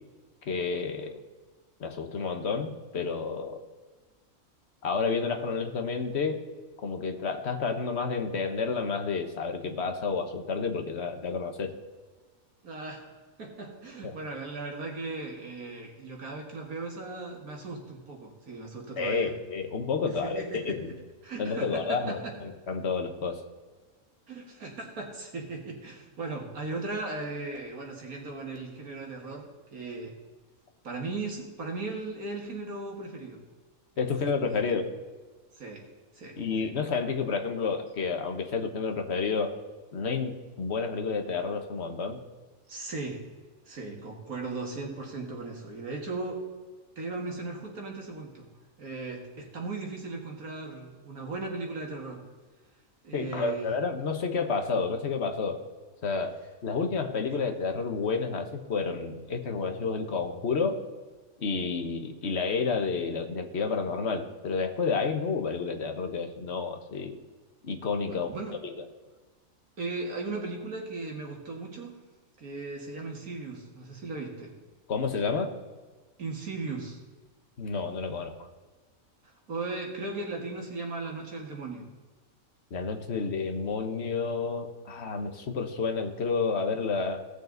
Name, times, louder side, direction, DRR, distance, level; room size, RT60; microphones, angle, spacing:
voice 1, 0.5-1.1 1.8-3.6 4.8-6.4 6.8-11.7 19.0-20.9 21.4-23.4 34.0-34.9 36.4-39.6 39.9-42.2 53.1-55.6 56.0-60.8 61.4-67.2 67.6-68.3 74.9-75.5 77.6-78.3 82.7-87.3, left 4 dB, 50° left, 5 dB, 1.4 m, -30 dB
voice 2, 12.6-13.1 13.4-19.3 20.2-20.8 21.2-22.3 24.3-30.2 30.8-33.4 34.0-34.2 34.5-34.6 35.5-35.9 36.1-36.7 42.7-43.2 43.7-46.4 47.0-48.5 48.8-52.2 53.0-53.8 68.0-68.5 69.8-72.0 72.4-74.5 76.2-77.0 79.2-81.9, right 3 dB, 80° right, 1 dB, 2.3 m, -37 dB
17.5 x 6.6 x 3.9 m, 1.3 s
omnidirectional pair, 1.5 m